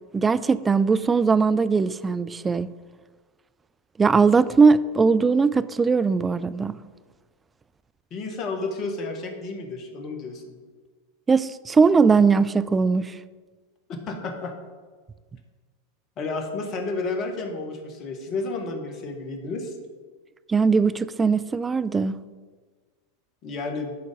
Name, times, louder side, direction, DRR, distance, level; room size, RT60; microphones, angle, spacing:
voice 1, 0.1-2.7 4.0-6.8 11.3-13.2 20.5-22.2, right 5 dB, 15° right, 0.3 m, -20 dB
voice 2, 8.1-10.6 13.9-14.5 16.2-19.7 23.4-24.0, left 3 dB, 40° left, 1.2 m, -31 dB
11.0 x 4.0 x 5.1 m
figure-of-eight pair, 90°, 0 cm